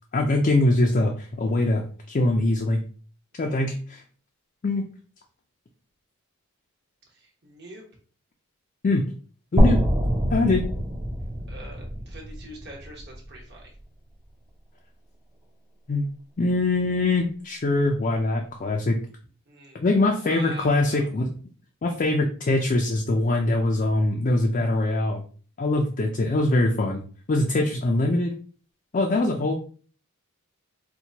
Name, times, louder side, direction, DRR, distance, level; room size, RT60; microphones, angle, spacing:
voice 1, 0.1-2.8 3.4-4.0 4.6-4.8 8.8-9.1 9.5-9.9 10.3-10.6 15.9-16.1 16.4-19.0 19.7-21.3 21.8-25.2 25.6-27.0 27.3-28.3 28.9-29.5, left 2 dB, 35° left, 1 dB, 0.4 m, -23 dB
voice 2, 7.1-7.8 11.5-13.7 19.5-19.8 20.1-21.1, right 1 dB, 50° right, -1 dB, 1.1 m, -44 dB
sound 1, 9.6-13.6, equal, 20° right, 0.5 m, -24 dB
4.3 x 2.2 x 2.8 m, 0.43 s
head